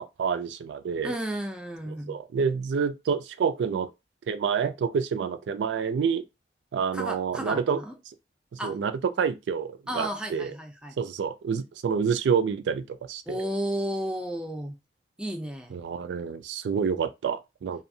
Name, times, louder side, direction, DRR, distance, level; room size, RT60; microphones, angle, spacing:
voice 1, 0.0-1.1 2.1-3.9 4.3-6.2 6.7-7.8 8.6-8.9 9.2-9.7 9.9-10.5 11.0-13.5 15.7-17.8, right 6 dB, 80° right, 0.3 m, -28 dB
voice 2, 1.0-2.2 6.9-8.0 8.6-8.8 9.9-11.0 13.3-14.8 15.2-15.7, equal, 5° right, 0.4 m, -33 dB
2.6 x 2.3 x 2.6 m
head